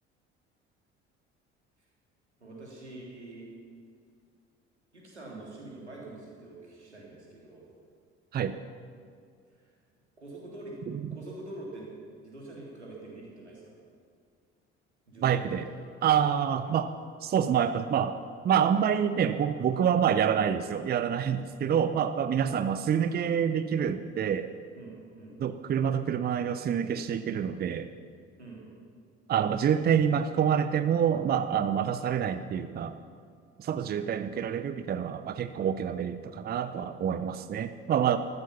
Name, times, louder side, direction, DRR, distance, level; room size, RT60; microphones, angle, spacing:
voice 1, 2.4-3.5 4.9-7.6 9.5-9.7 10.2-10.7 11.1-11.9 12.2-13.7 15.1-15.6 24.7-25.4 28.4-28.7 33.7-33.9, right 2 dB, 85° right, -3 dB, 3.1 m, -45 dB
voice 2, 15.2-15.7 16.0-16.9 17.2-18.2 18.4-24.5 25.4-27.9 29.3-33.0 33.6-38.2, right 8 dB, 30° right, 12 dB, 0.7 m, -27 dB
14.5 x 14.0 x 5.8 m, 2.2 s
figure-of-eight pair, 55°, 33 cm